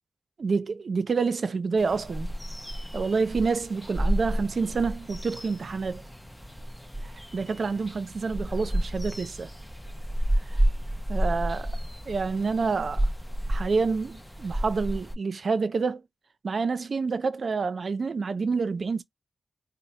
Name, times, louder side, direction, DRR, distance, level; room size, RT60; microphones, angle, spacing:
voice 1, 0.4-2.3 2.9-6.0 7.0-9.5 10.5-10.6 11.1-11.7 12.1-13.1 13.5-16.0 16.4-19.0, right 4 dB, 55° right, 0.5 m, -28 dB
sound 1, 1.8-15.2, right 1 dB, 5° left, 0.5 m, -31 dB
4.2 x 2.1 x 2.8 m
wide cardioid pair, 120°, 0 cm